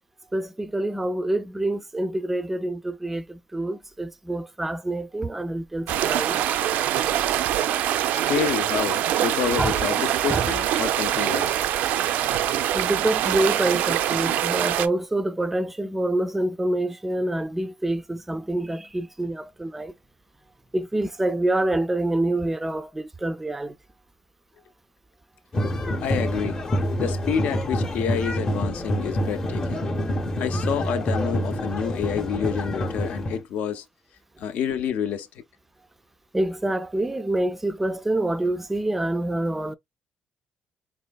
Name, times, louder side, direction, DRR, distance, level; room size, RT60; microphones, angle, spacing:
voice 1, 0.3-6.4 9.6-9.8 10.3-10.5 12.7-19.9 20.7-23.8 36.3-39.7, right 1 dB, 10° right, 0.4 m, -26 dB
sound 1, 5.9-14.9, right 11 dB, 85° right, 0.4 m, -24 dB
voice 2, 8.1-11.6 26.0-26.6 27.0-29.9 30.4-33.8 34.4-35.3, left 8 dB, 65° left, 0.6 m, -28 dB
sound 2, 25.5-33.4, equal, 25° left, 0.8 m, -27 dB
4.2 x 3.5 x 2.3 m
cardioid pair, 165°, 3 cm